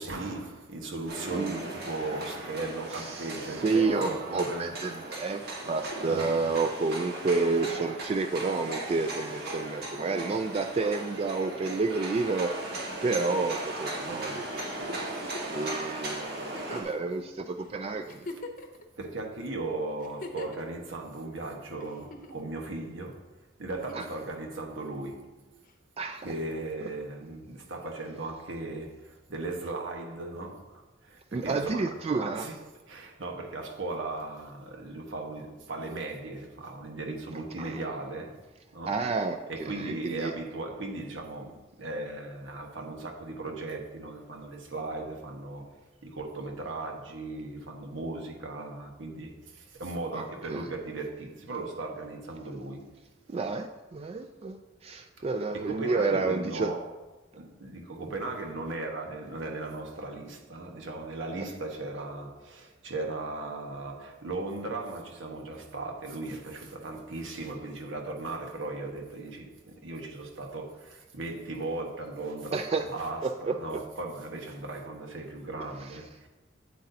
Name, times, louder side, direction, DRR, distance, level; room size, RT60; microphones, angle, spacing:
voice 1, 0.0-4.8 6.0-6.5 14.1-14.3 16.7-17.0 19.0-23.2 23.6-25.4 26.2-38.4 38.7-45.7 46.0-52.9 55.3-57.0 57.3-76.3, right 2 dB, 90° right, 1.3 m, -37 dB
sound 1, 1.1-16.8, right 1 dB, 60° right, 1.6 m, -37 dB
voice 2, 3.0-12.5 13.0-15.0 15.5-18.2 23.9-24.1 26.0-26.3 31.3-32.5 37.6-37.8 38.9-40.3 50.1-50.6 53.3-54.6 54.8-56.7 72.5-72.8 73.2-73.8, right 3 dB, 30° right, 0.3 m, -30 dB
Giggle, 15.0-15.6 16.5-17.0 17.6-17.7 18.1-18.8 20.0-20.6 21.8-22.5 23.7-24.2 25.7-25.8, left 2 dB, 45° left, 0.7 m, -42 dB
8.5 x 7.9 x 2.7 m
head